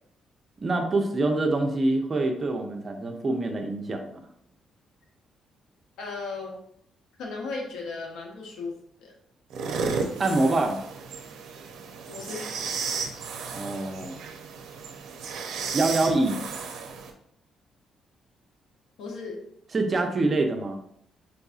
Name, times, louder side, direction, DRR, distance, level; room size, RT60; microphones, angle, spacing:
voice 1, 0.6-4.2 10.2-10.8 13.5-14.2 15.7-16.4 19.7-20.8, right 2 dB, 35° right, 4 dB, 0.6 m, -25 dB
voice 2, 6.0-6.6 7.2-8.7 9.0-9.1 12.1-12.8 19.0-19.4, left 3 dB, 85° left, 0 dB, 0.9 m, -36 dB
sound 1, 9.5-17.1, right 5 dB, 85° right, 0.5 m, -34 dB
5.5 x 2.6 x 2.4 m, 0.71 s
cardioid pair, 90°, 0 cm